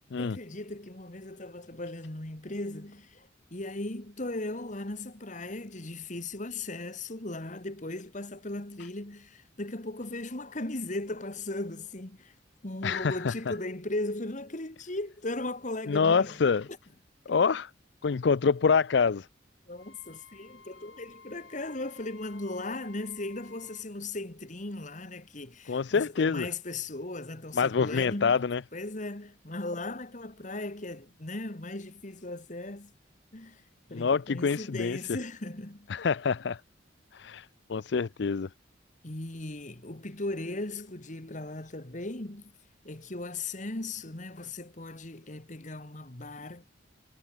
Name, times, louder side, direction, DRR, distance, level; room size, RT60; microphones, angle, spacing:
voice 1, 0.2-12.3 12.6-16.4 17.3-17.4 19.7-28.4 28.7-32.9 33.3-33.6 33.9-36.0 39.0-42.5 42.8-46.7, left 2 dB, 40° left, 2.0 m, -37 dB
voice 2, 12.8-13.3 15.9-16.7 17.3-17.7 18.0-19.3 25.7-26.5 27.5-28.6 33.9-35.0 35.9-36.6 37.1-38.5, left 5 dB, 65° left, 0.5 m, -26 dB
Wind instrument woodwind instrument, 19.7-23.9, left 5 dB, 90° left, 4.2 m, -54 dB
head